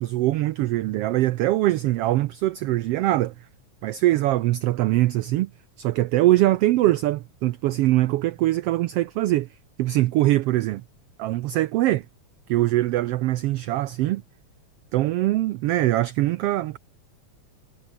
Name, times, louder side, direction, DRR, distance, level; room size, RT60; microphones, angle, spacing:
voice 1, 0.0-3.3 3.8-5.5 5.8-9.5 9.8-10.8 11.2-12.0 12.5-14.2 14.9-16.8, right 16 dB, 90° right, 1.3 m, -22 dB
omnidirectional pair, 3.4 m